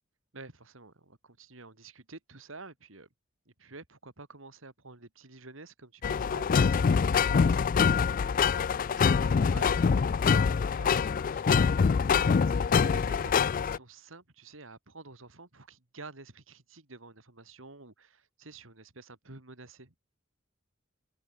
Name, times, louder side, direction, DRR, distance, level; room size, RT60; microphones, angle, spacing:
voice 1, 0.3-3.1 3.6-19.9, right 3 dB, 75° right, 3.0 m, -50 dB
sound 1, 6.0-13.8, left 6 dB, 45° left, 0.4 m, -25 dB
head